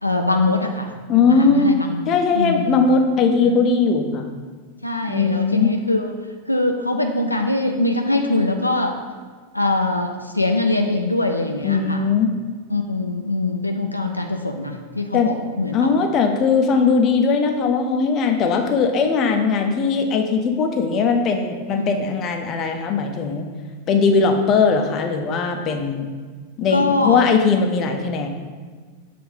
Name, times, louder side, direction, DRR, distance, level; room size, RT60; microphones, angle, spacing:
voice 1, 0.0-0.9 1.3-2.8 3.4-3.6 4.8-6.1 6.5-8.9 9.5-12.1 12.7-16.1 21.8-21.9 26.7-27.2, left 2 dB, 85° left, 3 dB, 0.4 m, -23 dB
voice 2, 1.1-1.8 2.1-4.3 5.1-5.7 11.6-12.3 15.1-15.3 15.7-23.5 23.9-26.1 26.6-28.3, left 5 dB, 30° left, 4 dB, 0.6 m, -19 dB
7.0 x 2.5 x 5.3 m, 1.5 s
figure-of-eight pair, 90°, 0 cm